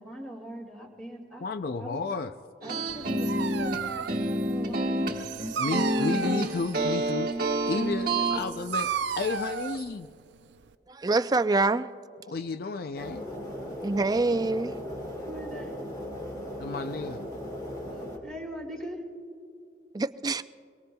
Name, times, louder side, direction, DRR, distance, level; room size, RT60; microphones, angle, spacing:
voice 1, 0.0-1.4 1.8-2.0 2.6-5.9 8.1-8.5 15.2-15.7 17.9-19.0, equal, 5° left, 2.2 m, -42 dB
voice 2, 1.4-2.3 5.6-7.3 7.7-10.1 12.3-13.3 16.6-17.2, left 4 dB, 55° left, 0.4 m, -32 dB
sound 1, 2.6-8.4, right 1 dB, 55° right, 1.2 m, -28 dB
Dog, 2.9-10.7, right 6 dB, 80° right, 0.4 m, -35 dB
voice 3, 10.9-11.9 13.8-14.7 19.9-20.4, right 3 dB, 20° right, 0.3 m, -25 dB
sound 2, 13.0-18.2, equal, 25° left, 2.6 m, -37 dB
24.0 x 23.5 x 2.3 m
head